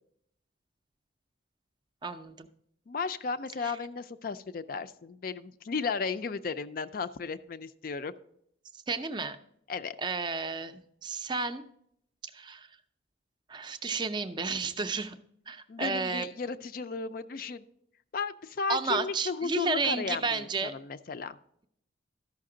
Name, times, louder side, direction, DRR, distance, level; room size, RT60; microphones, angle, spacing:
voice 1, 2.0-2.5 3.6-3.7 8.9-9.4 10.0-11.7 12.3-12.7 13.5-15.2 15.5-16.3 18.7-20.7, right 4 dB, 25° right, 9 dB, 0.4 m, -32 dB
voice 2, 2.9-8.2 9.7-10.0 15.7-17.7 18.1-21.4, left 4 dB, 45° left, 14 dB, 0.4 m, -34 dB
13.0 x 5.8 x 3.7 m, 0.72 s
head